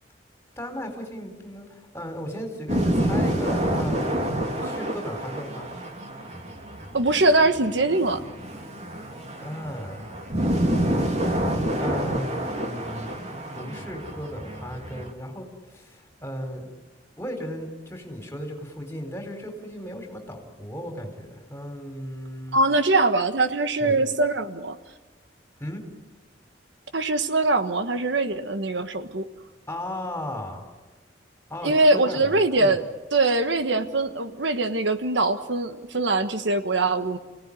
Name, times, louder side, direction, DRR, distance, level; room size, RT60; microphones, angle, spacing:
voice 1, 0.6-4.2 4.5-5.7 9.4-10.1 11.8-13.2 13.5-16.7 17.2-22.6 23.8-24.0 25.6-25.8 29.7-30.6 31.5-32.7, equal, 15° left, 3 dB, 4.0 m, -36 dB
sound 1, 2.7-15.1, right 1 dB, 35° right, 2.7 m, -28 dB
voice 2, 6.9-8.2 22.5-24.8 26.9-29.3 31.6-37.2, right 2 dB, 80° right, 9 dB, 1.4 m, -22 dB
29.5 x 18.0 x 9.9 m, 1.3 s
head